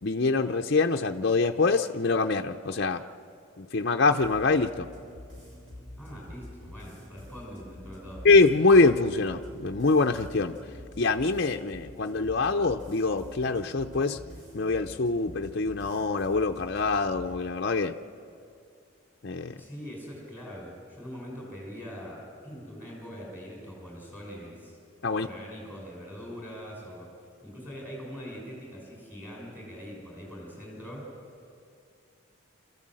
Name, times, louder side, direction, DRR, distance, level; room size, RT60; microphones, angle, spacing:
voice 1, 0.0-3.0 3.6-4.9 8.2-10.6 11.0-14.2 14.5-18.0 19.2-19.6 25.0-25.3, left 3 dB, 50° left, 4 dB, 0.6 m, -24 dB
sound 1, 4.2-17.3, left 1 dB, 65° right, 6.7 m, -47 dB
voice 2, 6.0-8.3 19.6-24.8 25.2-27.1 27.4-31.0, equal, 10° right, -3 dB, 6.1 m, -42 dB
26.5 x 14.5 x 7.6 m, 2.4 s
head